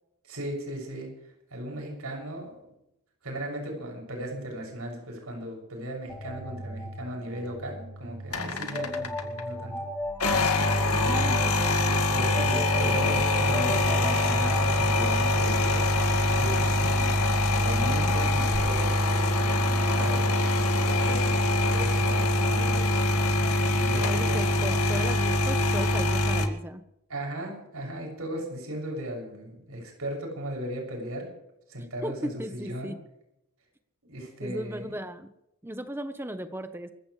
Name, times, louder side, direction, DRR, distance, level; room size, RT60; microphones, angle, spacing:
voice 1, 0.2-1.1 1.5-2.6 3.2-9.8 11.0-11.5 12.1-15.9 16.3-17.1 17.6-22.9 23.7-24.4 27.1-31.3 31.7-32.9 34.1-35.0, right 1 dB, 75° right, 0 dB, 7.1 m, -37 dB
sound 1, 6.1-14.8, left 1 dB, 5° left, 2.1 m, -36 dB
sound 2, 8.3-9.4 10.1-26.5, left 1 dB, 85° left, 2.0 m, -24 dB
voice 2, 8.4-9.0 10.9-11.8 18.0-18.4 23.9-26.8 32.0-33.0 34.4-35.3 35.6-36.9, right 1 dB, 10° right, 9 dB, 1.0 m, -37 dB
28.0 x 15.0 x 3.3 m, 0.83 s
head